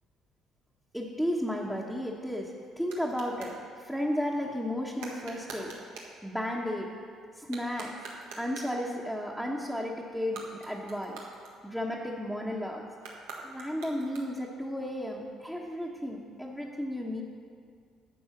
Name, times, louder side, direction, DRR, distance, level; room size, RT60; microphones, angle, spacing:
voice 1, 0.9-5.7 6.2-7.0 7.4-7.9 8.4-11.2 11.6-12.9 13.4-17.2, equal, ahead, -4 dB, 1.2 m, -33 dB
sound 1, 2.0-3.6 5.0-6.2 7.4-8.8 10.2-12.0 13.0-14.6, right 3 dB, 90° right, 1.6 m, -46 dB
10.5 x 7.2 x 5.9 m, 2.2 s
supercardioid pair, 75°, 0 cm